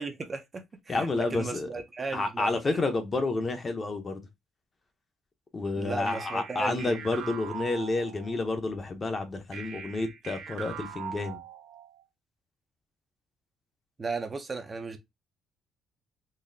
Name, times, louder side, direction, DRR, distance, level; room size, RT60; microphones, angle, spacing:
voice 1, 0.0-2.8 5.8-6.9 14.0-15.0, right 4 dB, 25° right, 0.5 m, -36 dB
voice 2, 0.9-1.7 2.1-4.2 5.5-11.4, left 3 dB, 25° left, 0.7 m, -30 dB
sound 1, 6.1-8.6 9.5-12.0, right 7 dB, 85° right, 0.7 m, -42 dB
4.0 x 2.6 x 2.6 m
cardioid pair, 150°, 0 cm